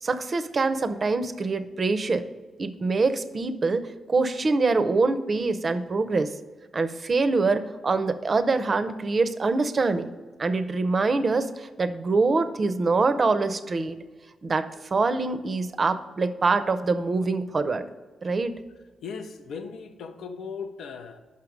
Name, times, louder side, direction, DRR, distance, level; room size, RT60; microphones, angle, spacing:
voice 1, 0.0-2.2 2.6-6.3 6.7-10.1 10.4-14.0 14.4-17.9 18.2-18.5, right 3 dB, 40° right, 10 dB, 0.5 m, -24 dB
voice 2, 19.0-21.2, left 5 dB, 80° left, 8 dB, 0.6 m, -37 dB
5.9 x 5.6 x 5.0 m, 1.3 s
cardioid pair, 95°, 0 cm